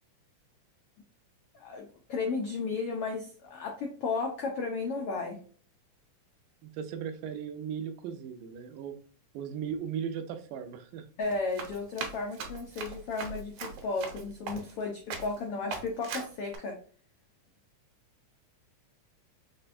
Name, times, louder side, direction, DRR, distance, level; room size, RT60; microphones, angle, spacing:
voice 1, 1.5-5.4 11.2-16.8, left 4 dB, 90° left, 1 dB, 1.2 m, -34 dB
voice 2, 6.6-9.0 9.3-11.1, right 8 dB, 85° right, 7 dB, 2.3 m, -37 dB
Run, 11.2-14.8 15.1-15.4 15.7-16.6, right 5 dB, 70° right, 2.3 m, -40 dB
6.0 x 3.3 x 2.5 m, 0.43 s
omnidirectional pair, 3.7 m